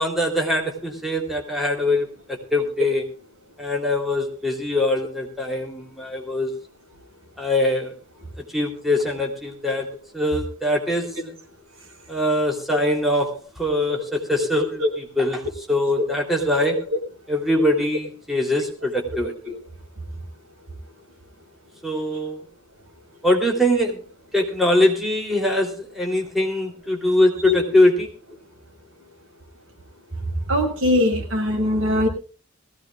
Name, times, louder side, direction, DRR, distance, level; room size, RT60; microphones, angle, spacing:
voice 1, 0.0-3.1 3.6-6.5 7.4-7.9 8.5-9.9 10.1-11.3 12.1-13.3 13.6-16.8 17.3-19.3 21.8-22.4 23.2-24.0 24.3-28.1, left 1 dB, ahead, 0 dB, 3.3 m, -22 dB
voice 2, 30.5-32.1, left 1 dB, 75° right, 2 dB, 6.0 m, -20 dB
21.0 x 16.5 x 2.4 m, 0.36 s
head